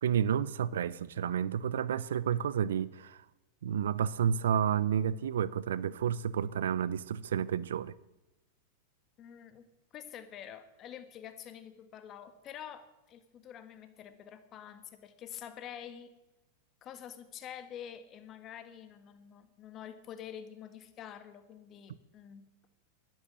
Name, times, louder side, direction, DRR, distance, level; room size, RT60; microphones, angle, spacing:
voice 1, 0.0-3.2 3.6-7.9, right 8 dB, 80° right, 0.6 m, -30 dB
voice 2, 9.2-9.7 9.9-16.1 16.8-22.4, left 9 dB, 40° left, 1.8 m, -47 dB
11.5 x 10.5 x 8.9 m
hypercardioid pair, 100°, 0 cm